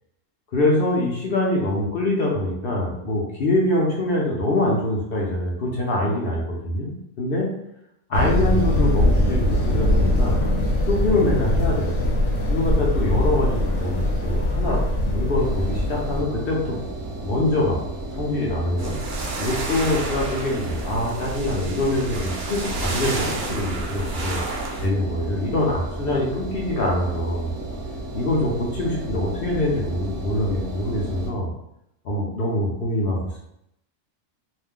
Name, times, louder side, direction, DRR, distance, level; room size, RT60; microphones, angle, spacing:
voice 1, 0.5-7.5 8.1-10.4 10.9-12.1 12.5-16.8 17.2-17.8 18.2-18.9 19.4-24.4 24.8-27.5 28.1-31.5 32.0-33.2, left 1 dB, 55° left, -3 dB, 0.7 m, -24 dB
sound 1, 8.1-16.2, left 1 dB, 75° left, 1.0 m, -21 dB
Engine, 15.4-31.3, right 1 dB, 45° right, 1.0 m, -33 dB
sound 2, 18.8-24.9, right 2 dB, 65° right, 0.5 m, -31 dB
2.5 x 2.1 x 3.5 m, 0.78 s
omnidirectional pair, 1.3 m